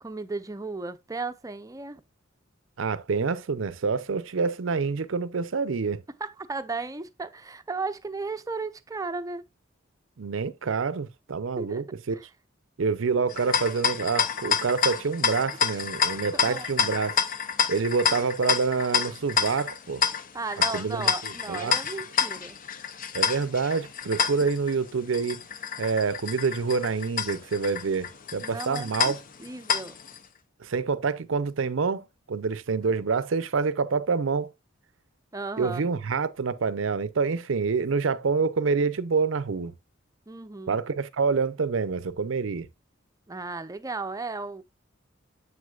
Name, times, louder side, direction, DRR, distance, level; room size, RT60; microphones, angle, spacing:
voice 1, 0.0-2.0 6.2-9.4 11.6-11.8 12.1-12.2 15.7-15.8 16.3-16.7 20.3-22.6 28.4-29.1 29.4-29.9 35.3-35.9 40.3-40.8 43.3-44.6, right 3 dB, 20° right, 0.6 m, -35 dB
voice 2, 2.8-6.0 10.2-12.2 12.8-17.2 17.7-20.0 20.7-21.8 23.1-25.4 25.8-29.2 30.6-34.5 35.6-39.7 40.7-42.7, right 5 dB, 70° right, 0.6 m, -27 dB
sound 1, 13.3-30.2, left 7 dB, 45° left, 0.6 m, -29 dB
7.4 x 6.4 x 2.4 m
head